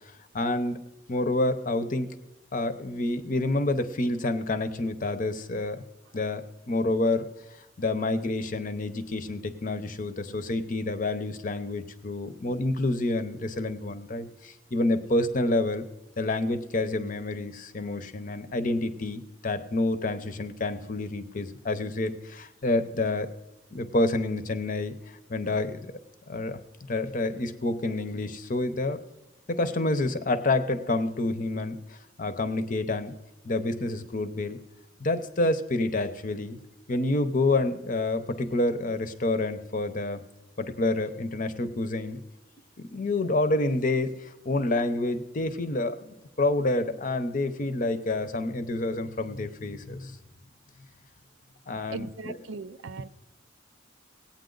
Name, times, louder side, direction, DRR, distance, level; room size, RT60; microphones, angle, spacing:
voice 1, 0.3-0.8 1.1-2.2 2.5-5.8 6.1-7.3 7.8-15.8 16.2-23.3 23.7-25.8 26.3-26.6 26.9-29.0 29.5-31.8 32.2-33.2 33.4-34.6 35.0-36.6 36.9-40.2 40.6-42.2 42.8-50.2 51.7-52.4, left 2 dB, 45° left, 11 dB, 0.7 m, -28 dB
voice 2, 51.9-53.1, right 4 dB, 90° right, 13 dB, 0.5 m, -38 dB
17.5 x 8.8 x 3.9 m, 0.96 s
head